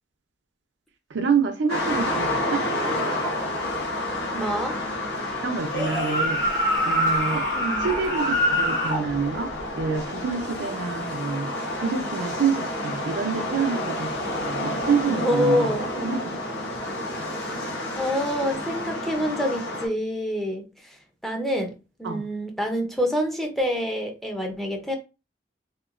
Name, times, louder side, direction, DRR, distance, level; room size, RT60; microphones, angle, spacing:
voice 1, 1.1-2.6 5.4-6.4 6.8-7.5 7.8-11.5 11.8-16.4 22.0-22.2, right 5 dB, 80° right, 0.5 m, -27 dB
sound 1, 1.7-19.9, left 1 dB, 70° left, 0.8 m, -30 dB
voice 2, 4.3-4.8 7.5-7.9 15.0-15.9 18.0-21.0 21.2-25.0, equal, ahead, 0.5 m, -27 dB
sound 2, 5.6-9.0, equal, 50° left, 1.2 m, -24 dB
2.9 x 2.1 x 2.4 m
head